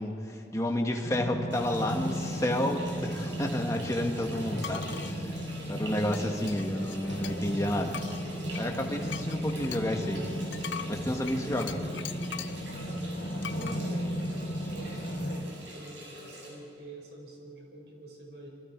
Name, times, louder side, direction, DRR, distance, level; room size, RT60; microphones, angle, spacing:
voice 1, 0.0-4.8 5.7-8.0 8.6-10.2 10.9-11.9, left 1 dB, 15° left, 2 dB, 1.7 m, -30 dB
voice 2, 0.6-1.1 4.6-5.4 6.6-6.9 9.6-9.8 11.8-12.0 12.9-13.2 13.5-18.5, right 1 dB, 70° right, 1 dB, 5.4 m, -47 dB
sound 1, 1.0-15.4, equal, 65° left, 3.4 m, -35 dB
sound 2, 1.5-16.5, right 1 dB, 85° right, 6.9 m, -45 dB
sound 3, 4.6-5.2 6.1-7.6 7.9-12.6 13.4-13.8, left 9 dB, 85° left, 0.7 m, -42 dB
27.5 x 23.5 x 4.7 m, 3.0 s
head